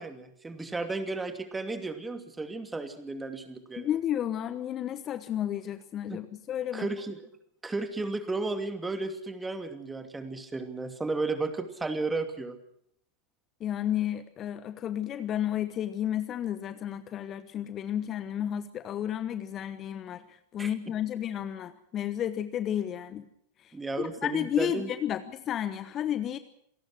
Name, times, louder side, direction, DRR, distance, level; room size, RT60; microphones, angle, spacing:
voice 1, 0.0-3.9 6.1-6.2 6.7-7.2 7.6-12.6 20.6-20.7 23.7-24.9, right 3 dB, 10° right, 8 dB, 2.6 m, -33 dB
voice 2, 3.8-6.9 13.6-20.2 20.5-23.2 24.0-26.4, left 10 dB, 30° left, 13 dB, 1.1 m, -32 dB
27.0 x 18.5 x 6.3 m, 0.70 s
figure-of-eight pair, 90°, 0 cm